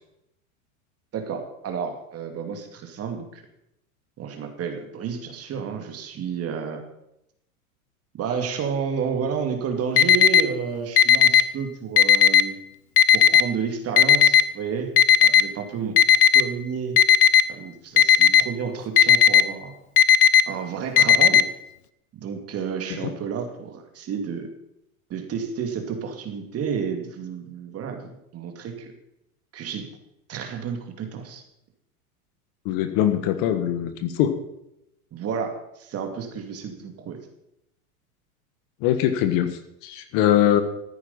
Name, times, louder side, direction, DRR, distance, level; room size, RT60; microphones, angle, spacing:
voice 1, 1.1-3.5 4.2-6.8 8.1-12.6 13.1-14.9 15.2-15.9 16.3-17.0 17.5-19.7 20.5-21.5 22.1-24.5 25.1-28.9 29.5-29.9 30.3-31.4 35.1-37.2, right 6 dB, 35° right, 5 dB, 2.6 m, -31 dB
Alarm, 10.0-10.4 11.0-11.4 12.0-12.4 13.0-13.4 14.0-14.4 15.0-15.4 16.0-16.4 17.0-17.4 18.0-18.4 19.0-19.4 20.0-20.4 21.0-21.4, left 9 dB, 85° left, 0.9 m, -14 dB
voice 2, 32.6-34.4 38.8-40.6, left 11 dB, 50° left, 10 dB, 1.5 m, -22 dB
14.0 x 9.4 x 5.7 m, 0.82 s
hypercardioid pair, 110°, 44 cm